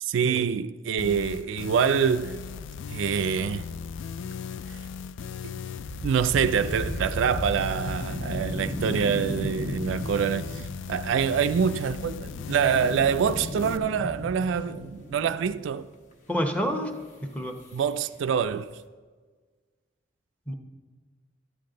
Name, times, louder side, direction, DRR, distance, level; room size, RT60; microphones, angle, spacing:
voice 1, 0.0-2.4 2.9-3.7 4.7-4.8 6.0-15.9 17.7-18.7, right 7 dB, 70° right, 0.3 m, -26 dB
sound 1, 1.0-13.8, left 6 dB, 65° left, 0.3 m, -37 dB
sound 2, 5.9-15.9 17.1-17.2 17.6-17.9 18.2-18.8, equal, 40° left, 1.1 m, -36 dB
voice 2, 16.3-16.9 17.2-17.6 20.5-20.6, equal, 10° left, 0.8 m, -28 dB
12.0 x 8.5 x 3.8 m
head